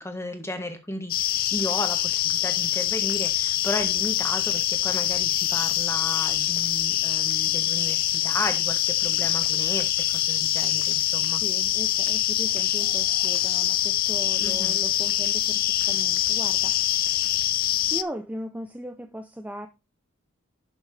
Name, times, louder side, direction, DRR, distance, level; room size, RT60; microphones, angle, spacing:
voice 1, 0.0-11.4 14.4-14.8, left 1 dB, 15° left, 1.5 m, -34 dB
sound 1, 1.1-18.0, left 12 dB, 45° left, 0.4 m, -24 dB
voice 2, 11.3-17.5 17.9-19.7, equal, 5° right, 0.6 m, -38 dB
11.5 x 6.3 x 3.4 m
head